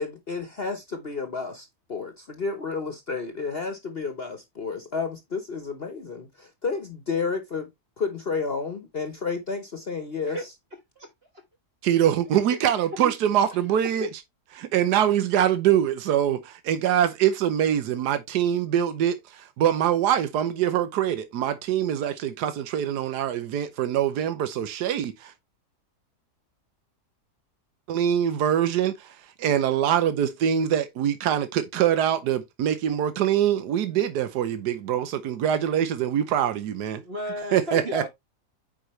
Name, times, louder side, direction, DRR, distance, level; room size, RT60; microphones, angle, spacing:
voice 1, 0.0-7.7 8.0-10.5, left 4 dB, 40° left, 1.1 m, -31 dB
voice 2, 11.8-14.1 14.6-25.3 27.9-37.0 37.5-38.1, right 10 dB, 85° right, 1.4 m, -24 dB
voice 3, 37.0-38.1, left 1 dB, 40° right, 1.4 m, -32 dB
8.9 x 4.8 x 3.1 m
omnidirectional pair, 1.7 m